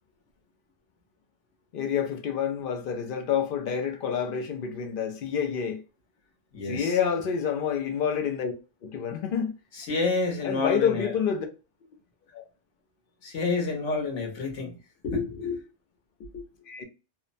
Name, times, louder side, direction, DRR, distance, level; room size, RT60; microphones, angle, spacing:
voice 1, 1.7-5.8 6.7-8.5 8.8-9.5 10.4-11.5 12.3-12.5 16.7-16.8, left 7 dB, 60° left, 0.6 m, -28 dB
voice 2, 6.5-7.0 9.7-11.1 13.2-14.7 15.0-15.6 16.3-16.4, left 3 dB, 85° left, 1.2 m, -29 dB
2.8 x 2.0 x 2.5 m
omnidirectional pair, 1.2 m